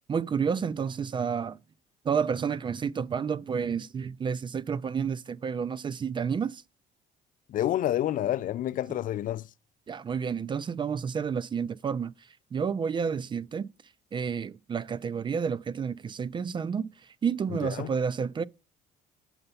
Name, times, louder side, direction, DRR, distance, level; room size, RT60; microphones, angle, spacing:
voice 1, 0.1-1.6 2.0-6.6 9.9-12.1 12.5-13.7 14.1-16.9 17.2-18.4, right 6 dB, 30° right, 0.4 m, -30 dB
voice 2, 7.5-9.5 17.6-17.9, left 12 dB, 55° left, 0.4 m, -28 dB
7.8 x 5.5 x 5.6 m
cardioid pair, 110°, 17 cm